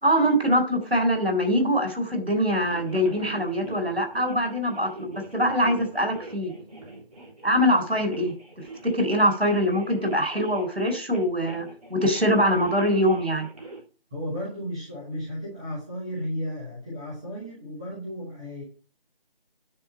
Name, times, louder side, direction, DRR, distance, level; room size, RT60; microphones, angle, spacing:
voice 1, 0.0-6.5 7.4-8.3 8.8-13.5, equal, 90° right, 6 dB, 3.8 m, -23 dB
sound 1, 2.5-13.8, right 2 dB, 40° right, 3.2 m, -42 dB
voice 2, 14.1-18.6, equal, 5° right, -6 dB, 1.2 m, -34 dB
9.9 x 4.2 x 7.0 m, 0.37 s
figure-of-eight pair, 160°, 29 cm